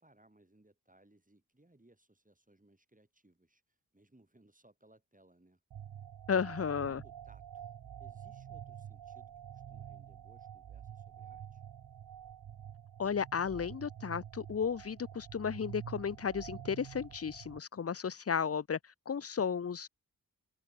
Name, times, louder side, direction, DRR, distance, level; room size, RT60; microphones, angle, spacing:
voice 1, 0.0-5.6 6.3-7.7 8.0-11.6, right 1 dB, 20° right, 6.8 m, -65 dB
sound 1, 5.7-17.6, right 9 dB, 90° right, 0.6 m, -48 dB
voice 2, 6.3-7.0 13.0-18.8 19.1-19.9, left 6 dB, 40° left, 0.6 m, -34 dB
wide cardioid pair, 80°, 37 cm